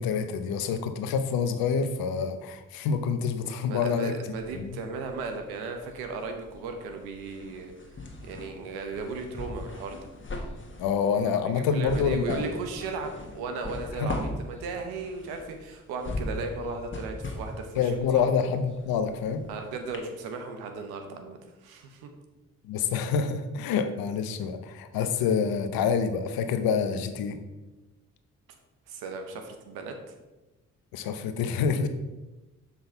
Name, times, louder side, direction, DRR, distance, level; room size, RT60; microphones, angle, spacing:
voice 1, 0.0-4.1 4.6-4.8 10.8-12.5 14.0-14.1 17.8-19.4 22.6-27.4 30.9-31.9, left 6 dB, 75° left, 8 dB, 0.7 m, -27 dB
voice 2, 3.4-7.7 8.2-10.0 11.3-18.3 19.5-22.1 28.9-30.1, right 4 dB, 80° right, 5 dB, 0.9 m, -36 dB
sound 1, 4.3-5.5 5.8-19.5 19.9-20.0, left 2 dB, 30° left, 1.4 m, -39 dB
6.9 x 3.9 x 4.5 m, 1.1 s
hypercardioid pair, 45°, 37 cm